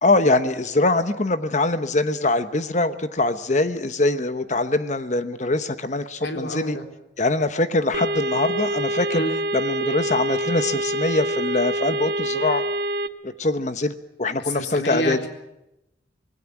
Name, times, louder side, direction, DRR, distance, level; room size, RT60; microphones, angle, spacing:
voice 1, 0.0-6.8 7.2-9.2 9.5-12.6 13.2-13.9 14.2-15.2, left 2 dB, 40° left, 10 dB, 1.0 m, -23 dB
voice 2, 6.2-6.8 9.1-9.3 14.4-15.3, left 1 dB, 65° left, 4 dB, 3.9 m, -28 dB
sound 1, 7.9-13.1, right 1 dB, 60° right, 1.2 m, -26 dB
26.0 x 19.5 x 7.3 m, 0.87 s
head